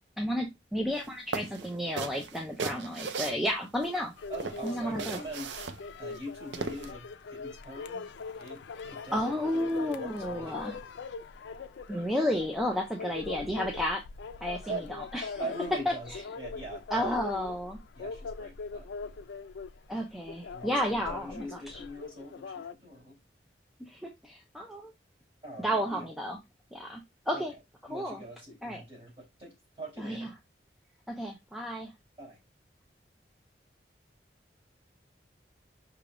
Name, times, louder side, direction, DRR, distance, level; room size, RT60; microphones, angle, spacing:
voice 1, 0.2-4.1 4.6-5.2 9.1-10.8 11.9-14.0 14.4-15.4 15.9-16.2 16.9-17.8 19.9-21.8 23.8-24.9 25.6-26.4 26.7-27.0 27.3-27.5 27.9-28.2 28.6-28.8 30.0-30.3 31.1-31.9, equal, ahead, 0.5 m, -32 dB
sound 1, 0.9-1.1 1.3-4.0 4.3-6.9, right 5 dB, 85° right, 0.5 m, -37 dB
sound 2, 4.2-22.7, left 4 dB, 80° left, 0.4 m, -42 dB
voice 2, 4.3-5.6 6.0-8.1 8.4-8.6 8.9-9.3 9.8-10.8 13.0-13.1 14.6-14.9 15.3-16.1 16.4-17.1 17.9-19.1 20.5-23.2 25.4-26.0 27.3-27.4 27.9-30.3 32.2-32.4, right 2 dB, 30° right, 3.3 m, -42 dB
5.6 x 3.4 x 2.5 m
head